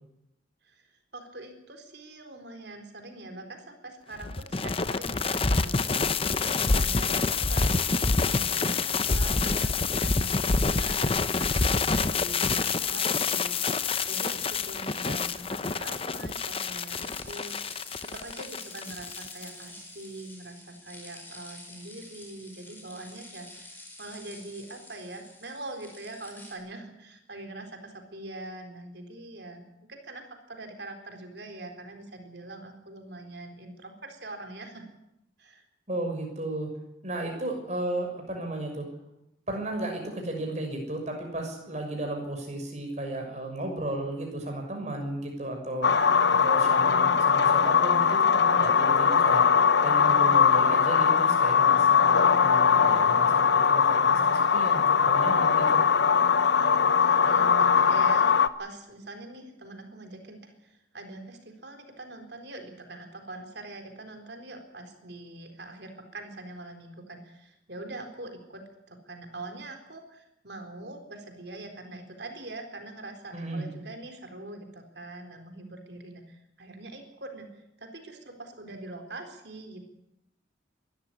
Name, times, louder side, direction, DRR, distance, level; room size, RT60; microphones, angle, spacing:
voice 1, 1.1-29.6 29.9-34.9 35.4-35.6 56.5-58.3 58.6-77.5 77.8-79.8, right 2 dB, 60° right, 5 dB, 4.1 m, -43 dB
sound 1, 4.2-19.5, left 4 dB, 30° left, 0.8 m, -27 dB
sound 2, 16.9-26.5, left 2 dB, 10° left, 4.9 m, -48 dB
voice 2, 35.9-36.7 37.0-38.9 39.5-45.9 46.4-49.5 49.8-55.8 73.3-73.7, right 1 dB, 35° right, 2 dB, 6.4 m, -34 dB
sound 3, 45.8-58.5, left 6 dB, 60° left, 0.8 m, -21 dB
22.5 x 13.5 x 10.0 m, 0.86 s
head